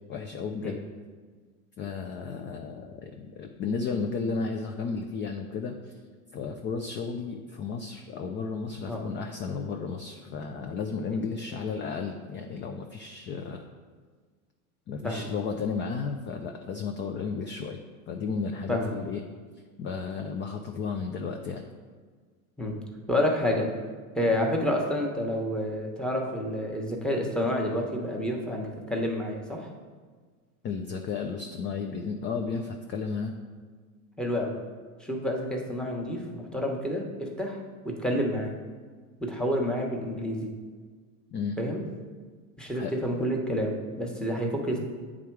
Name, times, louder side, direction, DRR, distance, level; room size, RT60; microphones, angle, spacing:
voice 1, 0.1-0.8 1.8-6.0 6.3-13.7 14.9-17.8 18.1-19.2 19.8-21.6 30.6-33.3 41.3-41.6 42.7-42.9, left 5 dB, 25° left, 4 dB, 0.4 m, -33 dB
voice 2, 23.1-23.7 24.1-29.7 34.2-34.6 35.0-37.6 37.8-38.5 39.2-40.5 41.6-41.8 42.6-44.8, equal, ahead, 0 dB, 1.1 m, -29 dB
8.5 x 3.7 x 4.6 m, 1.5 s
supercardioid pair, 105°, 43 cm